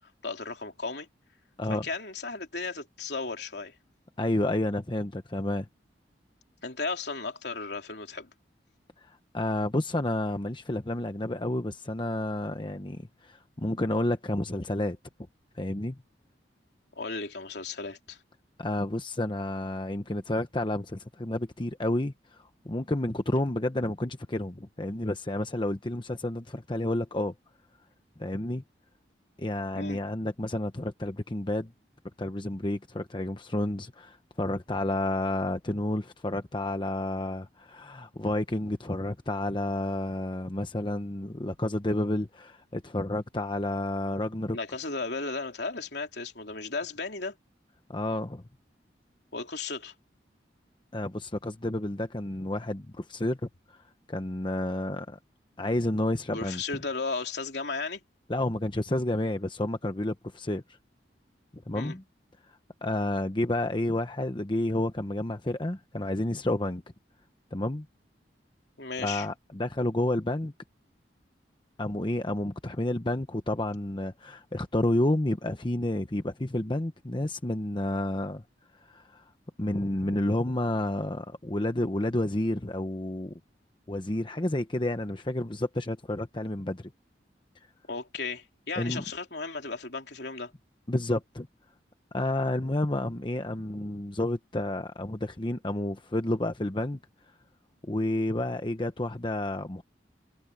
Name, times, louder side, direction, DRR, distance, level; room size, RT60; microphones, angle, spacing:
voice 1, 0.2-1.1 1.7-3.7 6.6-8.3 17.0-18.2 29.7-30.0 44.5-47.3 49.3-49.9 56.3-58.0 61.7-62.0 68.8-69.3 87.9-90.5, left 4 dB, 65° left, 3.5 m, -35 dB
voice 2, 4.2-5.7 9.0-15.0 15.6-16.0 18.6-22.1 22.6-27.3 28.2-28.6 29.4-31.7 32.2-44.6 47.9-48.4 50.9-53.8 54.1-55.2 55.6-56.6 58.3-60.6 61.7-62.0 62.8-66.8 67.5-67.9 69.0-70.5 71.8-78.4 78.9-79.3 79.6-83.4 83.9-86.9 88.8-89.0 90.9-91.5 92.1-97.0 97.8-99.8, left 1 dB, 25° left, 1.0 m, -30 dB
head